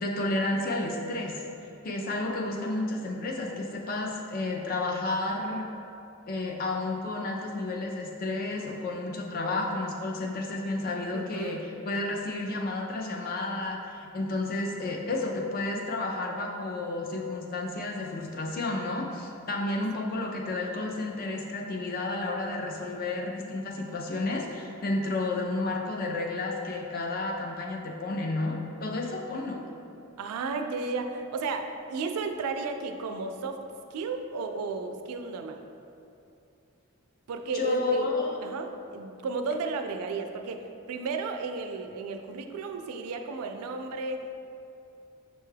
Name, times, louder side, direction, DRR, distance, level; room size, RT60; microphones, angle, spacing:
voice 1, 0.0-1.4 1.8-5.7 6.3-29.6 37.5-38.4, left 2 dB, 40° left, 0 dB, 0.3 m, -31 dB
voice 2, 11.1-11.6 19.7-19.9 30.2-33.6 33.9-35.6 37.3-38.1 38.4-44.3, right 4 dB, 85° right, 5 dB, 0.3 m, -33 dB
6.2 x 2.2 x 3.2 m, 2.7 s
head